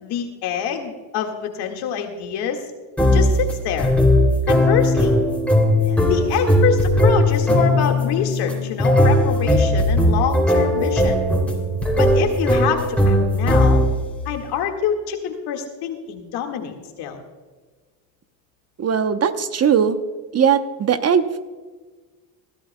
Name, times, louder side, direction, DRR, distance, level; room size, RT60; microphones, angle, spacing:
voice 1, 0.0-2.7 3.1-3.9 4.5-5.2 5.9-11.2 12.0-13.8 14.3-17.2, left 7 dB, 65° left, 4 dB, 1.9 m, -26 dB
sound 1, 3.0-14.1, left 1 dB, 5° left, 2.9 m, -18 dB
voice 2, 18.8-20.0 20.3-21.4, right 7 dB, 35° right, 10 dB, 0.9 m, -19 dB
21.0 x 13.5 x 2.2 m, 1.4 s
supercardioid pair, 85°, 42 cm